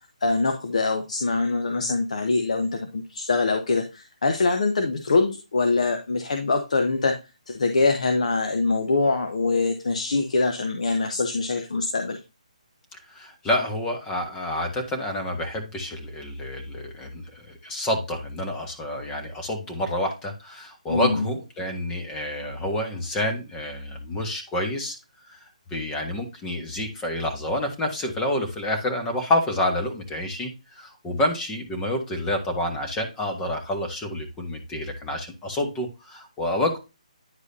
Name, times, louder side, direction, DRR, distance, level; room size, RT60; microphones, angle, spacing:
voice 1, 0.2-7.1 7.5-12.2 20.9-21.3, left 3 dB, 65° left, 5 dB, 1.1 m, -24 dB
voice 2, 13.1-24.9 25.3-25.4 25.7-36.8, left 1 dB, 15° left, 4 dB, 1.5 m, -28 dB
10.0 x 4.8 x 2.7 m, 0.27 s
figure-of-eight pair, 150°, 4 cm